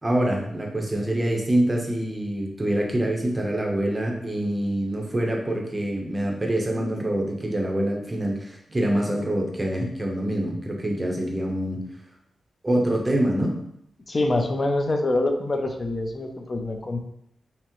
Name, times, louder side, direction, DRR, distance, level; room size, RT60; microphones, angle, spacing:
voice 1, 0.0-11.8 12.6-13.6, right 1 dB, 20° right, 0 dB, 0.6 m, -25 dB
voice 2, 14.1-17.0, left 2 dB, 30° left, 4 dB, 0.5 m, -25 dB
5.6 x 2.0 x 3.0 m, 0.75 s
wide cardioid pair, 150°, 0 cm